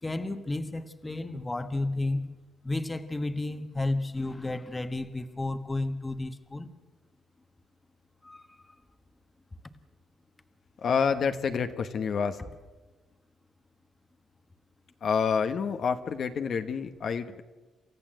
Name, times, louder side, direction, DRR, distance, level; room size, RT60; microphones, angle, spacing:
voice 1, 0.0-2.3 2.6-6.7 8.2-8.8, left 2 dB, 20° left, 10 dB, 1.3 m, -32 dB
voice 2, 10.8-12.4 15.0-17.4, left 6 dB, 55° left, 7 dB, 1.2 m, -28 dB
28.0 x 14.0 x 7.8 m, 1.2 s
cardioid pair, 90°, 0 cm